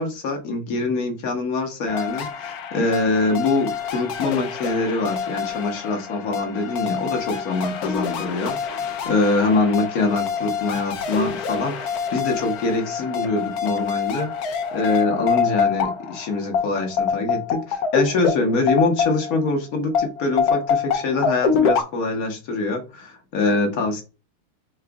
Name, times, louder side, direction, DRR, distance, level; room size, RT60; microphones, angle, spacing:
voice 1, 0.0-14.3 14.7-24.0, left 3 dB, 50° left, 3 dB, 1.2 m, -24 dB
sound 1, 1.9-19.5 19.9-21.8, left 6 dB, 70° left, 0.9 m, -26 dB
4.9 x 2.4 x 3.4 m, 0.31 s
omnidirectional pair, 2.3 m